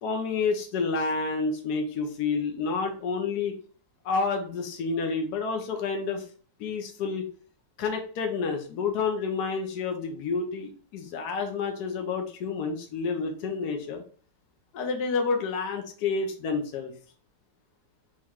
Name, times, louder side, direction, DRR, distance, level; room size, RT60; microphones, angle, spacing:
voice 1, 0.0-3.5 4.0-6.3 6.6-7.3 7.8-14.0 14.7-16.9, left 4 dB, 70° left, 4 dB, 1.2 m, -29 dB
3.9 x 3.1 x 4.4 m, 0.42 s
omnidirectional pair, 1.9 m